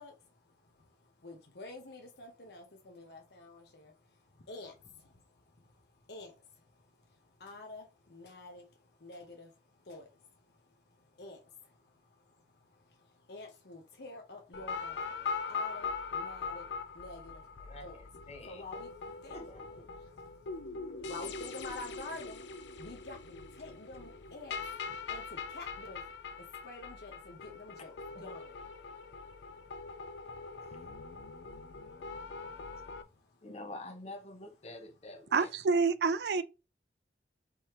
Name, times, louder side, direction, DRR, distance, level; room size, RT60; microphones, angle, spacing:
voice 1, 0.0-18.0 18.5-19.4 19.9-28.6 28.9-30.8 31.2-31.8 32.7-33.4, left 2 dB, 70° left, 1.0 m, -50 dB
sound 1, 14.5-33.0, left 5 dB, 85° left, 0.5 m, -42 dB
voice 2, 17.6-18.6 19.3-19.9 28.1-28.3 30.6-30.8 31.6-31.9 33.4-35.5, left 2 dB, 35° left, 0.7 m, -48 dB
voice 3, 35.3-36.4, right 4 dB, 65° right, 0.4 m, -27 dB
5.3 x 3.2 x 3.0 m
head